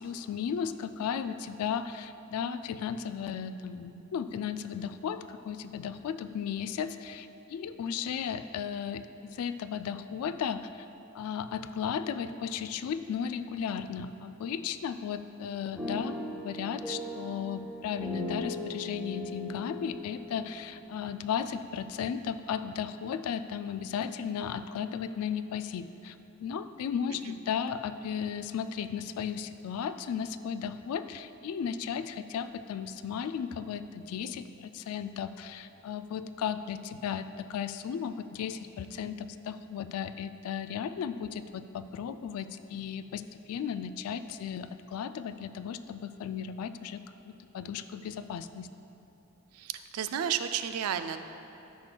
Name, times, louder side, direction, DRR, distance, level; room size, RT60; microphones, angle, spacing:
voice 1, 0.0-10.9 11.1-48.7, left 7 dB, 80° left, 14 dB, 0.3 m, -35 dB
sound 1, 15.8-21.8, left 1 dB, ahead, 1.3 m, -39 dB
voice 2, 49.5-51.2, right 8 dB, 85° right, 9 dB, 0.4 m, -32 dB
13.0 x 6.0 x 2.3 m, 2.8 s
head